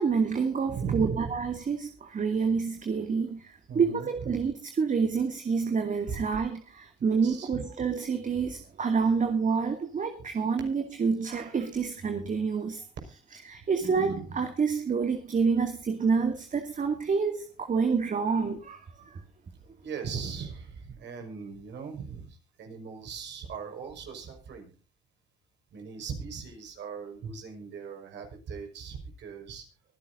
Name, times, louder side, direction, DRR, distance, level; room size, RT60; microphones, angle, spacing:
voice 1, 0.0-12.8 13.5-19.2, right 5 dB, 40° right, 6 dB, 2.4 m, -28 dB
voice 2, 0.7-1.6 3.7-4.5 6.1-6.2 7.0-7.9 19.8-24.7 25.7-29.6, right 6 dB, 60° right, 3 dB, 5.5 m, -38 dB
24.0 x 11.0 x 2.7 m, 0.36 s
supercardioid pair, 75°, 20 cm